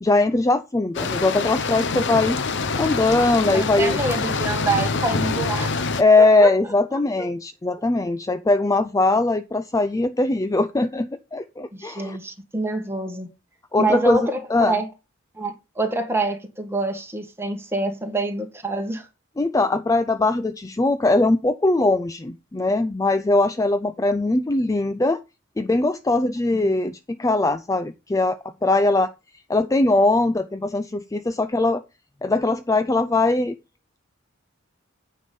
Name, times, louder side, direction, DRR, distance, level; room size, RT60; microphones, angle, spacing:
voice 1, 0.0-2.4 2.8-4.0 6.0-12.2 13.7-14.7 19.4-25.2 25.6-29.1 29.5-31.8 32.2-33.5, left 2 dB, 15° left, 0.4 m, -21 dB
sound 1, 0.9-6.0, left 4 dB, 60° left, 0.9 m, -25 dB
voice 2, 3.5-5.9 6.2-6.5 7.2-7.3 11.7-13.3 13.8-14.9 15.4-19.1 26.5-26.7, right 2 dB, 10° right, 1.8 m, -26 dB
9.4 x 5.6 x 5.4 m
head